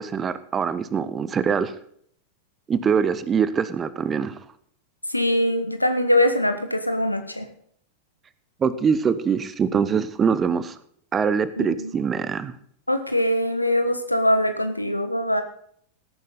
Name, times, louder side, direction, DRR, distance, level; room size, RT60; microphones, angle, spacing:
voice 1, 0.0-1.7 2.7-4.3 8.6-10.7 11.1-12.5, right 6 dB, 20° right, 15 dB, 1.0 m, -23 dB
voice 2, 5.1-7.5 11.6-11.9 12.9-15.4, left 1 dB, 85° left, 7 dB, 1.3 m, -22 dB
17.0 x 9.6 x 4.1 m, 0.63 s
figure-of-eight pair, 90°, 0 cm